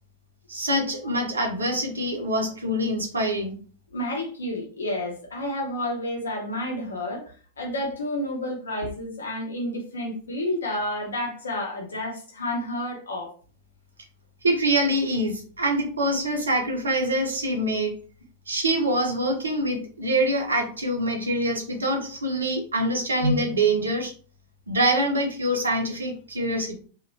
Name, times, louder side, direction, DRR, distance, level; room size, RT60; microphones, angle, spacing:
voice 1, 0.5-3.6 14.4-17.9 18.5-24.1 24.7-26.8, right 1 dB, 75° right, 2 dB, 0.8 m, -25 dB
voice 2, 3.9-13.3, left 1 dB, 70° left, 0 dB, 0.7 m, -30 dB
2.9 x 2.4 x 2.6 m, 0.41 s
figure-of-eight pair, 90°, 0 cm